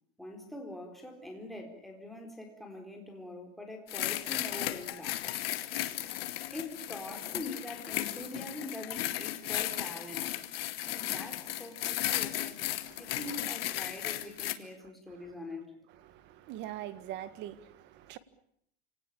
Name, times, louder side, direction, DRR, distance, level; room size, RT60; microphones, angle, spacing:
voice 1, 0.2-5.3 6.5-10.3 10.8-12.7 13.0-15.7, left 1 dB, ahead, 4.1 m, -44 dB
sound 1, 3.9-14.5, left 14 dB, 85° left, 2.3 m, -35 dB
voice 2, 12.9-13.2 15.2-15.3 16.0-18.2, right 12 dB, 40° right, 1.8 m, -43 dB
28.5 x 19.0 x 8.7 m
supercardioid pair, 155°, 29 cm